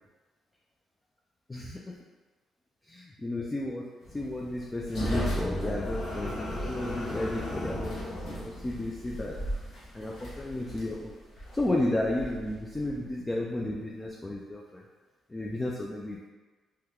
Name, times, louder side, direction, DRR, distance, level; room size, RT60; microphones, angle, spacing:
voice 1, 1.5-2.0 2.9-3.9 4.1-9.4 9.9-11.1 11.5-14.8 15.3-16.3, left 1 dB, 20° left, -3 dB, 0.3 m, -33 dB
sound 1, 4.0-13.1, equal, 60° left, 0.9 m, -36 dB
3.4 x 2.3 x 2.9 m, 1.3 s
cardioid pair, 90°, 0 cm